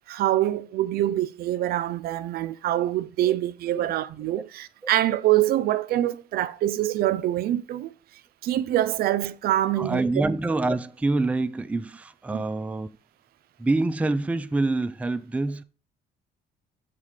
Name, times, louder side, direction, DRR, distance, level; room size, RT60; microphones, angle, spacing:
voice 1, 0.1-7.9 8.4-10.0 12.3-12.4, right 13 dB, 65° right, 0.5 m, -25 dB
voice 2, 9.8-12.9 13.6-15.6, right 2 dB, 10° right, 0.4 m, -26 dB
7.3 x 4.1 x 4.9 m
cardioid pair, 110°, 17 cm